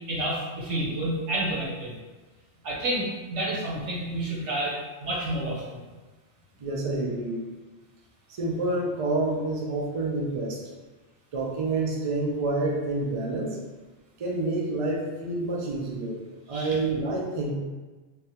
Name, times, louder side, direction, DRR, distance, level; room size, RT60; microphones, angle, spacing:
voice 1, 0.1-2.0 2.6-5.8 16.5-16.8, right 1 dB, 90° right, -5 dB, 1.2 m, -30 dB
voice 2, 6.6-7.4 8.3-10.6 11.3-13.6 14.2-16.2 16.5-17.5, right 2 dB, 50° right, -2 dB, 0.4 m, -28 dB
3.3 x 2.2 x 2.8 m, 1.3 s
omnidirectional pair, 1.2 m